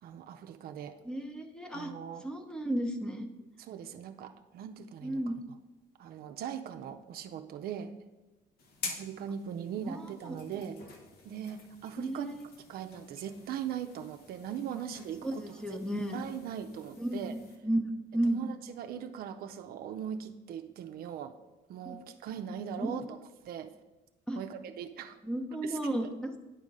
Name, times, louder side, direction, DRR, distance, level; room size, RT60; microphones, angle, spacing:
voice 1, 0.0-1.0 1.7-2.2 3.6-5.2 6.0-7.9 8.8-10.8 11.2-12.4 12.7-15.9 16.1-17.3 18.2-21.4 21.7-23.1 23.4-23.8 24.4-25.2 25.6-26.1, right 8 dB, 65° right, 6 dB, 0.5 m, -40 dB
voice 2, 1.0-1.9 2.2-3.3 5.0-5.4 9.9-10.4 12.0-12.4 15.2-16.2 17.0-18.4 21.8-22.0 22.8-23.0 24.3-24.4 25.2-26.4, right 1 dB, 5° left, 4 dB, 0.8 m, -33 dB
sound 1, 8.6-17.6, left 4 dB, 65° left, 1.2 m, -48 dB
9.8 x 3.7 x 5.3 m, 1.1 s
cardioid pair, 110°, 17 cm